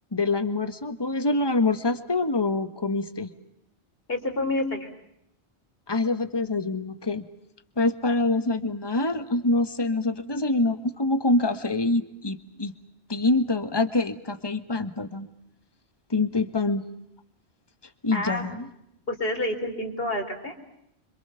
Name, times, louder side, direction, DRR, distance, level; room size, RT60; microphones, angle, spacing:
voice 1, 0.1-3.3 5.9-7.2 7.8-12.7 13.1-15.3 16.1-16.8 18.0-18.7, left 2 dB, 25° left, 10 dB, 1.6 m, -25 dB
voice 2, 4.1-4.9 18.1-18.5 19.1-20.5, left 1 dB, 60° left, 5 dB, 4.3 m, -28 dB
27.0 x 26.0 x 7.0 m, 0.80 s
omnidirectional pair, 1.1 m